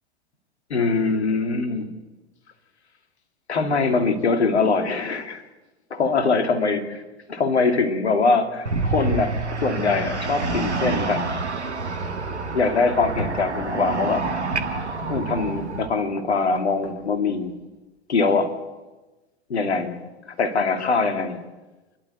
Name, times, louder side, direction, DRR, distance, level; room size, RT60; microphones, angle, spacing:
voice 1, 0.7-1.9 3.5-5.4 5.9-7.0 7.3-9.3 9.6-11.3 12.5-14.3 15.1-17.6 18.1-18.5 19.5-20.0 20.3-21.4, left 4 dB, 75° left, 5 dB, 2.5 m, -22 dB
sound 1, 8.7-15.9, right 3 dB, 85° right, 1.6 m, -27 dB
sound 2, 9.9-11.2 13.2-14.5 16.3-17.5, left 3 dB, 50° left, 4.0 m, -44 dB
28.5 x 12.0 x 8.1 m, 1.1 s
figure-of-eight pair, 90°, 33 cm